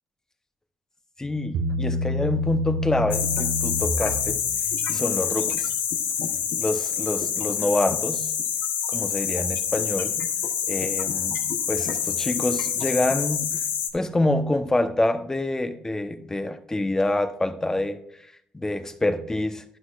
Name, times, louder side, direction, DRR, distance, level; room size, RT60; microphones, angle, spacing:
voice 1, 1.2-4.4 4.9-5.7 6.6-8.3 8.9-10.2 10.7-13.6 13.9-18.0 18.5-19.6, left 2 dB, 20° left, 9 dB, 1.0 m, -26 dB
Bass guitar, 1.5-4.9, left 1 dB, 75° right, 1.3 m, -28 dB
sound 1, 3.1-13.9, left 8 dB, 75° left, 1.0 m, -27 dB
12.5 x 9.6 x 2.5 m, 0.71 s
hypercardioid pair, 55°, 3 cm